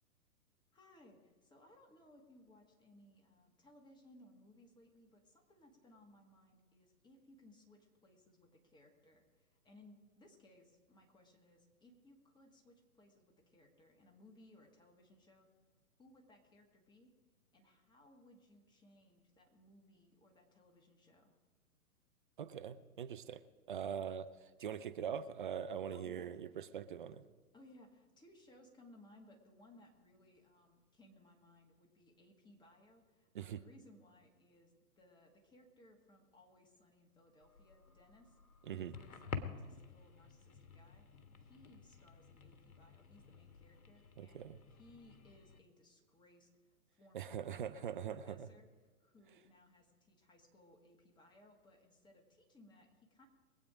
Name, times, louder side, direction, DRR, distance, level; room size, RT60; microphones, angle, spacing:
voice 1, 0.7-15.5 16.0-17.1 17.5-21.4 25.9-26.4 27.5-48.7 49.0-53.2, left 1 dB, 10° left, 2 dB, 1.6 m, -64 dB
voice 2, 22.4-23.4 23.7-27.2 33.3-33.6 38.7-38.9 44.2-44.6 47.1-48.5, right 8 dB, 35° right, 11 dB, 0.5 m, -42 dB
sound 1, 37.4-45.6, left 5 dB, 65° left, 1.4 m, -51 dB
22.0 x 8.4 x 5.0 m, 1.4 s
figure-of-eight pair, 120°, 45 cm